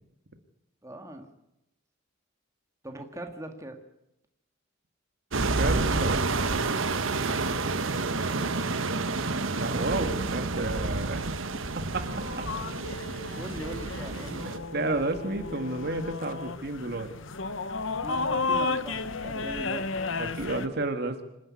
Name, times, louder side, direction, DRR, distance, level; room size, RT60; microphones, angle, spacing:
voice 1, 0.8-1.3 2.8-3.8 13.4-14.7 18.0-19.9, right 1 dB, 15° right, 4 dB, 1.9 m, -40 dB
sound 1, 5.3-14.6, right 3 dB, 70° right, 1.2 m, -29 dB
voice 2, 5.5-7.0 9.5-11.3 11.8-12.5 13.2-13.4 14.7-17.1 20.2-21.3, right 2 dB, 50° right, 7 dB, 1.7 m, -32 dB
sound 2, 11.9-20.7, left 3 dB, 65° left, 1.1 m, -33 dB
26.0 x 10.5 x 9.7 m, 0.86 s
head